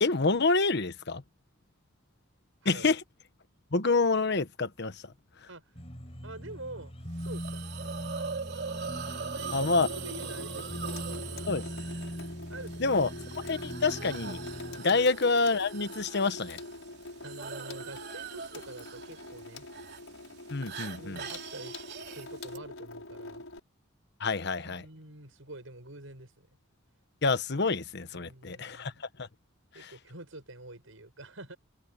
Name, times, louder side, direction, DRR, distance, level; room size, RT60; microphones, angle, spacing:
voice 1, 0.0-1.2 2.7-3.0 3.7-5.1 9.5-9.9 11.5-11.6 12.8-13.1 13.5-14.4 14.8-16.6 20.5-21.2 24.2-24.8 27.2-28.9 29.2-29.3 29.8-29.9, left 3 dB, 55° left, 1.1 m, -27 dB
sound 1, 5.7-14.8, equal, 30° left, 6.5 m, -41 dB
voice 2, 6.2-6.9 7.2-7.7 9.0-11.5 12.5-13.1 14.8-15.1 17.2-19.7 21.0-21.8 22.1-23.4 24.6-26.5 28.1-29.0 29.7-31.6, right 2 dB, 75° right, 7.3 m, -47 dB
Hiss, 7.2-22.6, right 6 dB, 55° right, 3.6 m, -42 dB
Water tap faucet / Sink (filling or washing), 9.4-23.6, left 2 dB, 85° left, 5.9 m, -44 dB
open air
head